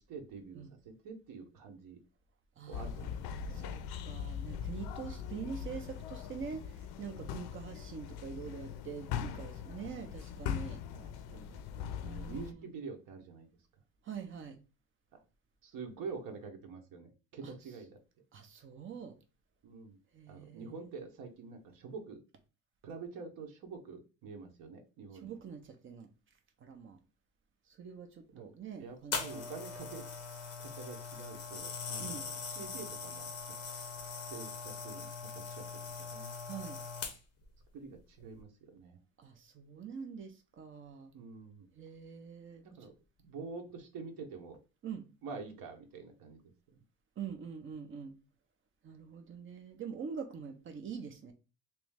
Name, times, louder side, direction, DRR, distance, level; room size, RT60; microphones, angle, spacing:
voice 1, 0.1-2.0 2.7-3.7 9.1-9.4 10.9-13.5 15.1-15.2 15.6-18.0 19.6-20.0 20.3-22.2 22.8-25.4 28.3-28.5 28.8-30.0 30.6-33.5 34.3-36.3 37.7-39.0 41.1-41.7 42.6-42.9 43.2-44.6 45.2-46.4, right 4 dB, 55° right, 4 dB, 1.1 m, -47 dB
voice 2, 2.6-10.8 12.0-12.7 14.0-14.6 17.4-17.5 18.3-19.1 20.1-20.9 25.2-26.1 26.6-27.0 27.7-29.5 32.0-32.3 36.5-36.8 39.2-41.1 41.7-42.6 44.8-45.0 47.2-48.2 48.8-51.3, right 6 dB, 30° right, 7 dB, 0.6 m, -45 dB
sound 1, 2.7-12.5, left 8 dB, 65° left, 0.5 m, -41 dB
sound 2, 29.1-37.4 38.2-38.4, left 5 dB, 40° left, 0.9 m, -41 dB
3.1 x 3.0 x 3.4 m, 0.31 s
cardioid pair, 145°, 40 cm